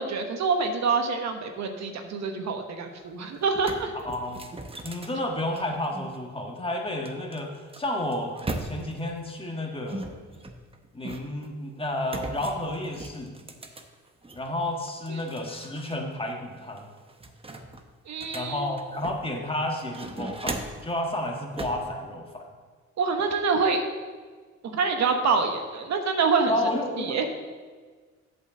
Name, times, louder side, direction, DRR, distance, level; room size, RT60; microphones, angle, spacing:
voice 1, 0.0-3.9 18.1-18.7 23.0-23.8 24.6-26.5 27.0-27.3, right 4 dB, 65° right, 5 dB, 1.1 m, -26 dB
sound 1, 3.0-3.1 3.4-6.2 7.1-9.1 9.9-11.5 12.1-14.5 14.9-16.0 16.3-16.4 16.8-19.4 19.8-20.9 21.6-21.9, right 2 dB, 20° right, 0.9 m, -38 dB
voice 2, 3.9-4.4 4.8-8.3 8.6-10.1 10.9-13.4 14.3-16.9 18.3-22.5 26.5-27.3, left 1 dB, 20° left, 1 dB, 1.5 m, -31 dB
8.3 x 5.3 x 7.2 m, 1.5 s
cardioid pair, 90°, 30 cm